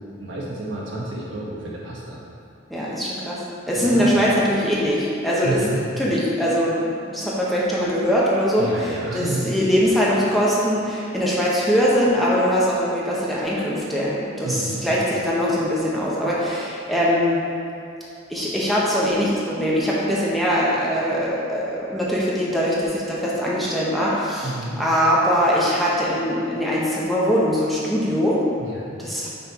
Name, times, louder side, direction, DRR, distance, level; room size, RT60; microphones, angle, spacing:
voice 1, 0.2-2.2 3.7-4.1 5.4-5.8 8.6-9.5 14.4-14.9 24.4-24.8 28.6-28.9, right 2 dB, 70° right, -6 dB, 1.4 m, -30 dB
voice 2, 2.7-17.4 18.3-28.4 29.0-29.3, equal, ahead, -7 dB, 0.9 m, -22 dB
5.7 x 4.4 x 4.6 m, 2.7 s
head